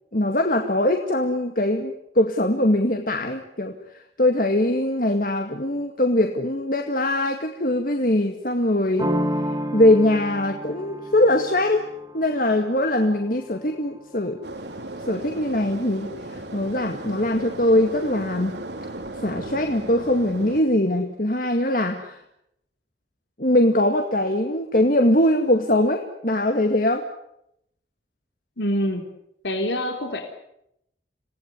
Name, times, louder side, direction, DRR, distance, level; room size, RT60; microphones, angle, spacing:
voice 1, 0.1-3.7 4.2-9.1 9.7-11.9 12.1-14.4 15.1-18.5 19.2-22.2 23.4-27.0, left 1 dB, 50° left, 4 dB, 2.1 m, -22 dB
sound 1, 9.0-14.5, equal, 20° right, 1.8 m, -31 dB
sound 2, 14.4-20.6, right 1 dB, 80° right, 3.3 m, -36 dB
voice 2, 28.6-29.0 29.4-30.2, equal, 85° left, 4 dB, 3.5 m, -25 dB
27.5 x 18.5 x 9.8 m, 0.79 s
head